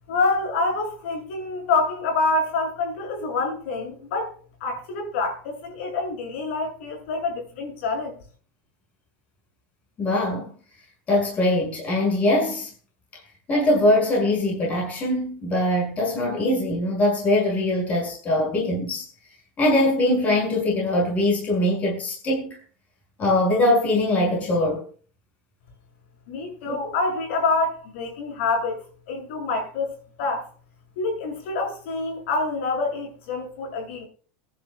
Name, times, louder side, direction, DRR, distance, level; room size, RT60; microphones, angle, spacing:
voice 1, 0.1-8.2 26.3-28.8 29.1-30.5 31.0-34.1, left 3 dB, 80° left, 7.6 m, -26 dB
voice 2, 10.0-10.5 11.1-12.7 13.5-19.0 19.6-22.6 23.2-24.8 26.7-26.8, left 1 dB, 25° left, 6.4 m, -22 dB
28.5 x 11.0 x 2.4 m
supercardioid pair, 175°, 7 cm